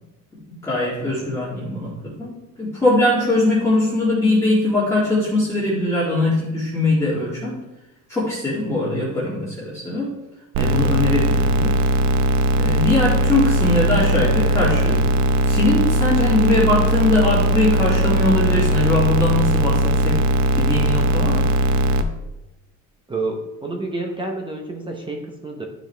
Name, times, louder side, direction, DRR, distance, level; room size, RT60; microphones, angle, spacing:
voice 1, 0.5-7.6 8.1-10.1 10.6-11.8 12.6-15.0 15.5-20.2 20.6-21.5, left 1 dB, 10° left, -9 dB, 1.9 m, -21 dB
sound 1, 10.5-22.0, equal, 60° right, 0.7 m, -19 dB
voice 2, 23.1-25.7, right 2 dB, 15° right, 2 dB, 0.8 m, -29 dB
11.5 x 5.0 x 3.3 m, 0.97 s
cardioid pair, 155°, 33 cm